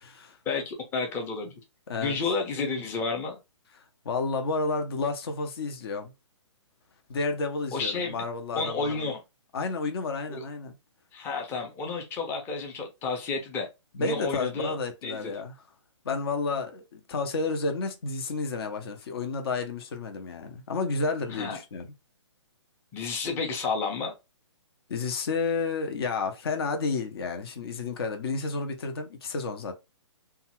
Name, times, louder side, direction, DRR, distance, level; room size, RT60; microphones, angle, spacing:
voice 1, 0.5-1.6 2.0-3.4 7.7-8.1 8.6-9.2 10.4-10.5 11.1-13.7 14.0-14.7 15.0-15.3 21.3-21.6 22.9-24.1, left 4 dB, 15° left, 0.6 m, -31 dB
voice 2, 1.9-2.2 4.0-6.1 7.1-9.1 9.5-10.7 13.9-15.6 16.0-21.9 24.9-29.7, left 4 dB, 55° left, 0.7 m, -31 dB
2.7 x 2.3 x 2.9 m
figure-of-eight pair, 130°, 16 cm